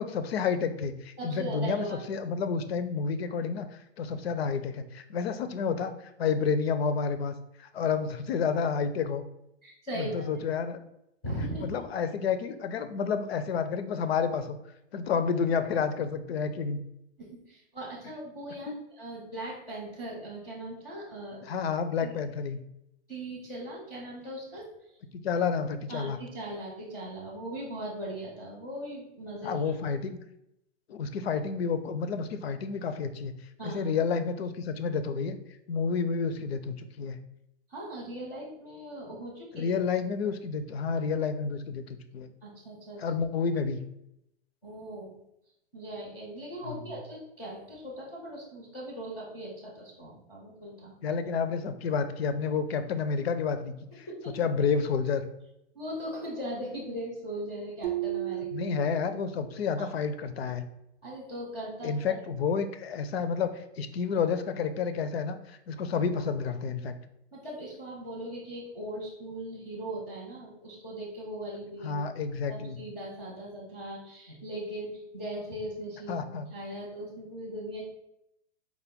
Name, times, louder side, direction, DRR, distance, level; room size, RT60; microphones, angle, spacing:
voice 1, 0.0-5.9 6.2-9.2 10.0-10.8 11.6-14.6 14.9-16.8 18.7-18.8 21.4-22.6 25.2-26.2 29.4-30.2 30.9-33.3 33.6-35.4 35.7-37.2 39.5-42.3 43.0-43.8 46.6-46.8 51.0-54.1 54.3-55.2 58.5-60.7 61.8-67.0 71.8-72.8 76.1-76.5, left 5 dB, 60° left, 10 dB, 0.5 m, -30 dB
voice 2, 1.2-2.1 9.6-10.1 11.2-11.8 17.2-21.4 22.0-22.1 23.1-24.6 25.9-29.7 33.6-33.9 37.7-39.7 42.4-43.0 44.6-45.1 45.7-50.9 54.2-54.3 55.7-58.5 59.8-59.9 61.0-62.2 67.3-72.0 72.5-76.2 76.5-77.8, right 1 dB, 10° left, -7 dB, 0.4 m, -39 dB
sound 1, 57.8-59.5, right 15 dB, 55° right, 0.4 m, -34 dB
4.7 x 2.2 x 3.5 m, 0.81 s
hypercardioid pair, 160°, 35 cm